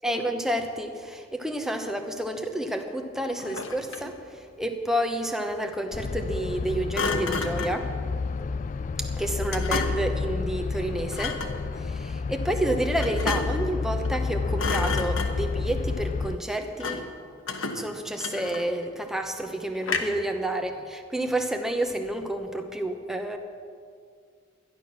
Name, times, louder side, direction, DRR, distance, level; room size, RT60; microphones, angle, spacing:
voice 1, 0.0-7.9 9.0-11.4 11.8-17.1 17.7-23.4, right 1 dB, ahead, 4 dB, 0.8 m, -30 dB
Thump thud, 3.4-4.2 6.9-7.8 9.5-10.2 11.1-11.6 13.0-13.7 14.0-14.3 14.6-15.6 16.8-17.2 17.5-18.8 19.8-20.3, left 4 dB, 80° left, 1.2 m, -31 dB
sound 1, 5.9-16.4, left 4 dB, 40° left, 0.3 m, -30 dB
12.5 x 11.5 x 6.1 m, 2.1 s
head